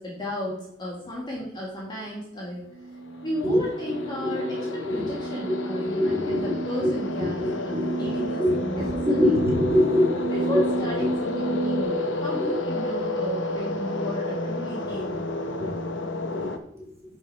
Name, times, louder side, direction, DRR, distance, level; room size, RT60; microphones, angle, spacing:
voice 1, 0.0-2.6 3.2-9.4 10.3-15.2, left 1 dB, 25° left, -4 dB, 2.4 m, -34 dB
sound 1, 2.6-11.8, right 3 dB, 55° right, 1.6 m, -33 dB
sound 2, 3.0-16.6, left 2 dB, 70° left, 1.0 m, -31 dB
voice 2, 4.2-5.2 5.5-6.9 7.2-10.6 11.0-11.1 12.4-12.5 14.9-15.2 15.6-15.7 16.3-16.8, left 1 dB, 15° right, -4 dB, 3.6 m, -25 dB
10.0 x 4.9 x 4.9 m, 0.75 s
head